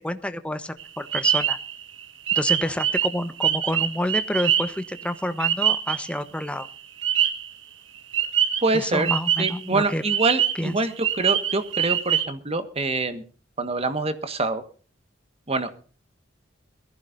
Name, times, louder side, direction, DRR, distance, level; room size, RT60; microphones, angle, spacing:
voice 1, 0.0-1.6 2.3-6.7 8.7-10.0 10.6-10.8, left 1 dB, 5° left, 10 dB, 1.0 m, -28 dB
sound 1, 0.8-6.2 6.4-7.5 8.1-9.7 10.1-12.2, right 9 dB, 75° right, 1.6 m, -24 dB
voice 2, 8.6-9.1 9.4-13.2 13.6-14.6 15.5-15.8, right 3 dB, 30° right, 9 dB, 1.5 m, -25 dB
21.5 x 15.0 x 2.6 m, 0.40 s
head